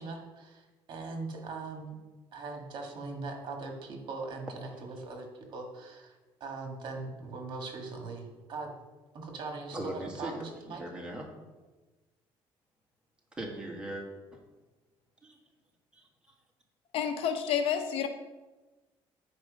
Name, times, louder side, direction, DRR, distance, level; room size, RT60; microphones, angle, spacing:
voice 1, 0.0-2.0 2.3-6.1 6.4-8.7 9.1-10.8, right 3 dB, 55° right, 2 dB, 1.9 m, -40 dB
voice 2, 9.7-11.3 13.4-14.0 14.3-14.4 15.2-15.4 15.9-16.0, right 1 dB, 10° right, -1 dB, 1.8 m, -39 dB
voice 3, 16.9-18.1, left 8 dB, 70° left, 7 dB, 0.9 m, -29 dB
9.5 x 5.0 x 5.2 m, 1.2 s
cardioid pair, 135°, 10 cm